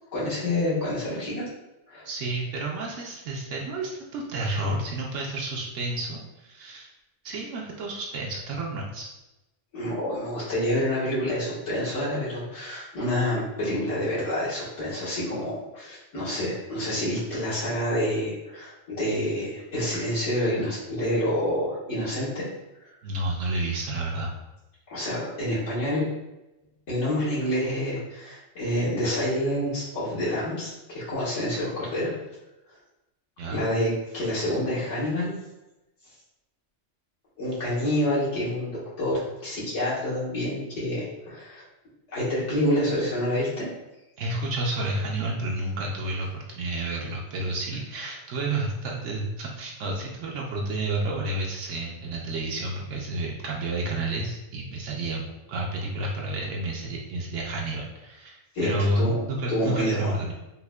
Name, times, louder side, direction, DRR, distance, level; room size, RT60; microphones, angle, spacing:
voice 1, 0.1-1.4 1.9-2.1 9.7-22.5 22.8-22.9 24.9-26.1 26.9-32.1 33.5-35.3 37.4-41.6 42.1-43.7 58.5-59.2 59.5-60.1, left 1 dB, 85° left, -9 dB, 1.6 m, -28 dB
voice 2, 2.0-6.9 7.2-9.1 23.0-24.3 33.4-33.7 44.2-60.3, right 2 dB, 85° right, -2 dB, 0.9 m, -30 dB
5.5 x 2.1 x 2.2 m, 0.97 s
omnidirectional pair, 1.2 m